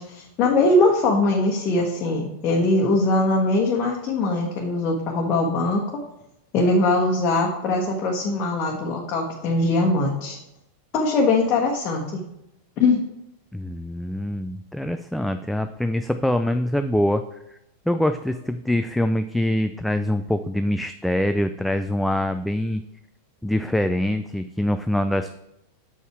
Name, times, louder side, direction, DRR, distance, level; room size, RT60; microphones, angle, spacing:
voice 1, 0.0-5.8 6.5-10.4 10.9-12.2 12.8-13.0, left 2 dB, 35° left, -1 dB, 1.2 m, -21 dB
voice 2, 13.5-17.2 17.9-22.8 23.4-25.3, left 1 dB, ahead, 8 dB, 0.3 m, -24 dB
7.2 x 5.4 x 4.5 m, 0.84 s
figure-of-eight pair, 90°, 0 cm